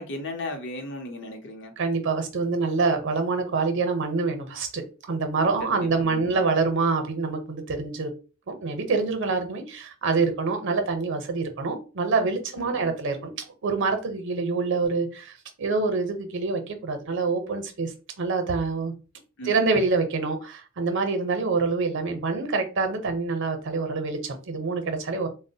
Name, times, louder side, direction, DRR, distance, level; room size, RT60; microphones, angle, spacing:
voice 1, 0.0-1.7 5.6-6.4 12.5-13.0 19.4-19.8, left 1 dB, 60° left, 0.7 m, -36 dB
voice 2, 1.8-4.8 5.1-8.1 8.5-17.9 18.2-18.9 19.4-25.3, right 4 dB, 60° right, 0.6 m, -26 dB
3.5 x 2.0 x 2.7 m
head